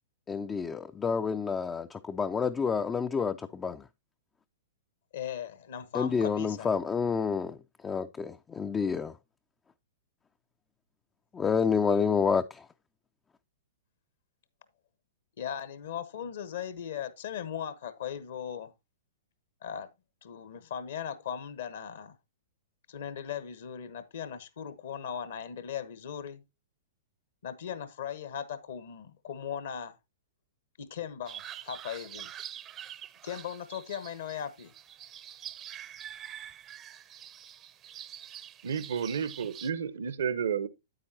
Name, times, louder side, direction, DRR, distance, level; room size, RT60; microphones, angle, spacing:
voice 1, 0.3-3.8 5.9-7.6 7.8-9.1 11.3-12.6, left 6 dB, 15° left, 0.4 m, -29 dB
voice 2, 5.1-6.7 15.4-18.7 19.6-19.9 20.2-22.2 22.9-26.4 27.4-29.9 30.8-32.3 33.2-34.7, left 8 dB, 60° left, 1.0 m, -38 dB
sound 1, 31.3-39.7, right 10 dB, 25° right, 0.6 m, -45 dB
voice 3, 38.6-40.7, right 7 dB, 60° right, 0.8 m, -31 dB
8.9 x 8.7 x 2.8 m
figure-of-eight pair, 105°, 0 cm